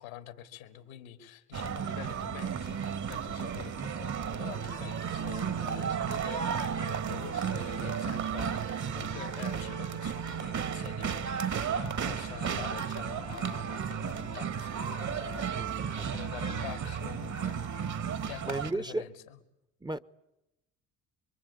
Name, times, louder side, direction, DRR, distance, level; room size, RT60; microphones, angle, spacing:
voice 1, 0.0-17.6 18.2-19.4, left 11 dB, 90° left, 2.6 m, -46 dB
sound 1, 1.5-18.7, right 7 dB, 45° right, 1.9 m, -34 dB
voice 2, 15.6-16.2 18.4-19.1 19.8-20.0, right 2 dB, 10° right, 1.0 m, -35 dB
26.0 x 23.5 x 8.4 m
hypercardioid pair, 60°, 40 cm